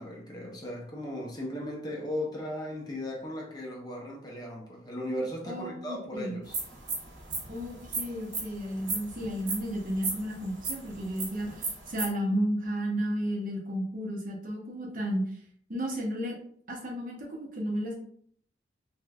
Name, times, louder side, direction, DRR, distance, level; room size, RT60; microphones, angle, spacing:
voice 1, 0.0-6.6, left 1 dB, 20° left, -2 dB, 0.6 m, -36 dB
voice 2, 5.4-6.4 7.5-15.2 15.7-16.3 16.7-18.0, equal, 45° right, -1 dB, 0.7 m, -33 dB
sound 1, 6.5-12.1, right 3 dB, 75° right, 1.1 m, -35 dB
3.1 x 2.9 x 2.3 m, 0.62 s
head